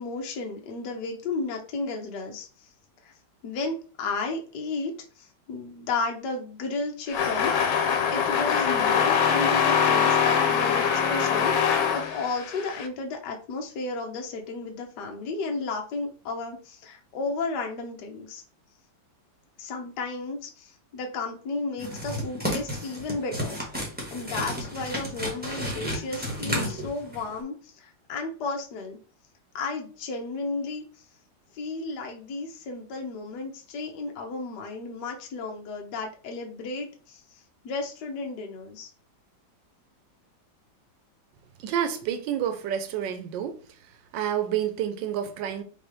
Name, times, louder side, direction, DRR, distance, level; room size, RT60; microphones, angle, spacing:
voice 1, 0.0-2.5 3.0-3.1 3.4-4.9 5.2-7.5 8.1-18.4 19.6-23.6 24.1-29.0 29.5-30.8 31.5-37.2 37.6-38.9, left 3 dB, 65° left, 1.4 m, -33 dB
sound 1, 7.1-12.9, left 7 dB, 90° left, 1.5 m, -23 dB
sound 2, 21.8-27.4, equal, 5° right, 0.9 m, -32 dB
voice 2, 41.6-43.6 44.1-45.6, right 9 dB, 75° right, 1.4 m, -29 dB
5.2 x 2.8 x 3.2 m
omnidirectional pair, 2.0 m